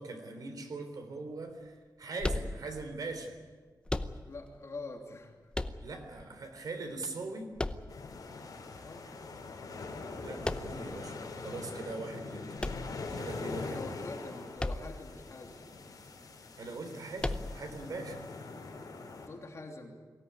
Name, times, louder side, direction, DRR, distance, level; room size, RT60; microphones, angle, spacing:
voice 1, 0.0-3.4 5.8-7.5 10.2-12.4 13.1-13.9 16.6-18.3, right 3 dB, 60° right, 5 dB, 3.6 m, -41 dB
sound 1, 2.2-3.0 3.9-4.6 5.5-6.2 7.6-8.4 10.4-11.0 12.6-13.5 14.6-15.1 15.4-15.5 17.2-17.8, left 2 dB, 15° left, 0.8 m, -35 dB
voice 2, 4.3-5.3 6.1-6.3 8.8-9.1 13.5-15.7 19.2-20.0, left 3 dB, 45° left, 1 dB, 3.0 m, -45 dB
sound 2, 7.9-19.3, left 3 dB, 60° left, 4.5 m, -43 dB
23.0 x 17.0 x 9.7 m, 1.5 s
wide cardioid pair, 165°, 7 cm